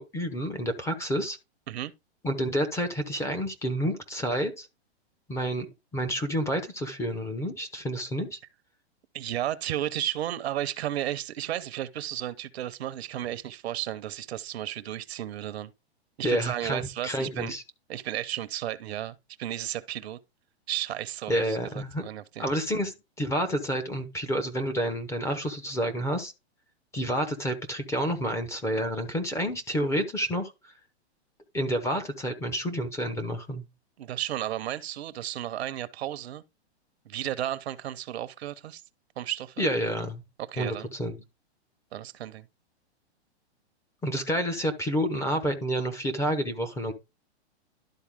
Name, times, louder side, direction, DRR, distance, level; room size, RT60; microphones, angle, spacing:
voice 1, 0.0-1.4 2.2-4.7 5.3-5.7 5.9-8.4 16.2-17.6 21.3-22.0 22.4-26.3 26.9-30.5 31.5-33.7 39.6-40.2 40.6-41.1 44.0-46.9, equal, 10° left, 0.8 m, -29 dB
voice 2, 9.1-15.7 16.2-17.5 17.9-20.2 20.7-22.4 34.0-36.4 37.0-38.8 39.2-39.7 40.4-40.9 41.9-42.5, right 12 dB, 65° right, 0.8 m, -33 dB
11.5 x 4.0 x 3.6 m
hypercardioid pair, 145°, 34 cm